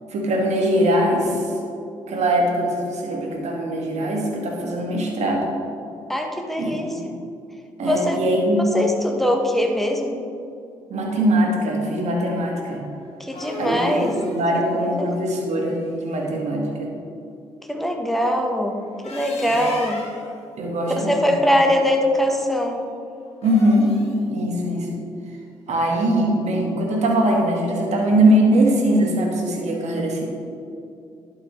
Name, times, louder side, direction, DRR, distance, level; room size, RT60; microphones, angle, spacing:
voice 1, 0.1-1.4 2.1-5.5 6.6-7.1 7.8-8.7 10.9-12.8 13.6-16.9 19.5-19.6 20.6-21.2 23.4-23.9 24.3-25.1 25.7-30.2, right 1 dB, 65° right, 0 dB, 1.7 m, -21 dB
voice 2, 6.1-6.9 7.8-8.2 8.7-10.2 13.2-14.1 14.9-15.1 17.7-18.8 19.1-20.0 21.0-22.8, equal, ahead, 2 dB, 1.2 m, -22 dB
sound 1, 13.0-16.1 18.8-20.3 23.3-24.2, left 2 dB, 55° left, 1.7 m, -38 dB
11.5 x 5.5 x 3.3 m, 2.5 s
hypercardioid pair, 50°, 13 cm